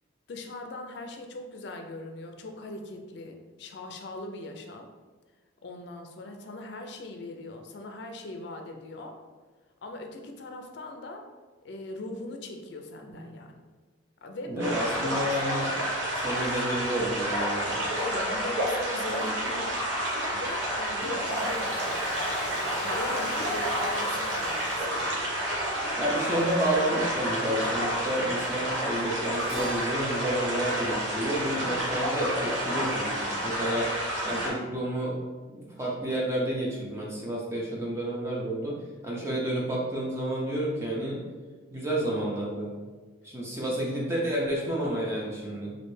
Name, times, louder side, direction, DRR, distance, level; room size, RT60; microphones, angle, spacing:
voice 1, 0.3-4.9 5.6-9.2 9.8-11.3 11.6-13.5 14.2-15.3 18.0-19.9 20.2-25.3, left 2 dB, 60° left, 4 dB, 0.4 m, -40 dB
voice 2, 14.5-15.8 16.2-17.8 26.0-33.9 34.2-35.2 35.5-38.8 39.0-41.2 41.7-42.7 43.2-45.8, right 1 dB, 15° right, -4 dB, 0.5 m, -30 dB
sound 1, 14.6-34.5, equal, 70° right, 0.9 m, -30 dB
Domestic sounds home sounds, 21.0-25.9, equal, 85° right, 1.4 m, -39 dB
Keyboard (musical), 29.5-34.1, right 3 dB, 50° right, 0.7 m, -46 dB
3.1 x 2.5 x 3.1 m, 1.4 s
head